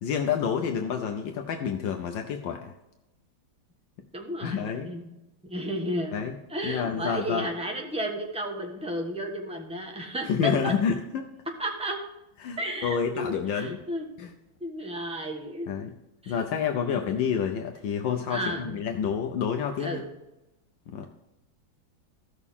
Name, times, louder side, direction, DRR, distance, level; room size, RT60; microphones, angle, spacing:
voice 1, 0.0-2.7 4.4-4.9 6.1-6.4 6.6-7.5 10.2-11.3 12.4-13.8 14.2-14.3 15.7-15.9 16.3-20.0 20.9-21.1, left 7 dB, 75° left, 4 dB, 1.4 m, -28 dB
voice 2, 4.1-5.1 5.5-6.2 6.5-10.7 11.6-12.0 12.6-14.1 14.6-15.7 16.2-16.4 16.7-17.0 18.3-18.8 19.8-20.1, equal, 5° right, 2 dB, 1.0 m, -33 dB
15.5 x 6.4 x 3.6 m, 0.96 s
omnidirectional pair, 2.1 m